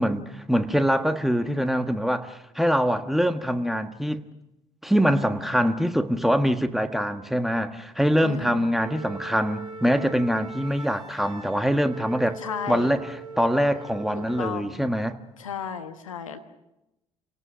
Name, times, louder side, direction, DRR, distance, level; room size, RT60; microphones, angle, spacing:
voice 1, 0.0-4.2 4.8-12.4 12.7-15.2, equal, ahead, 1.5 m, -24 dB
voice 2, 8.2-8.7 12.4-12.9 14.4-14.8 15.4-16.4, left 7 dB, 80° left, 1.3 m, -34 dB
Wind instrument woodwind instrument, 8.8-14.6, right 3 dB, 30° right, 7.5 m, -40 dB
29.5 x 18.0 x 6.3 m
figure-of-eight pair, 55°, 17 cm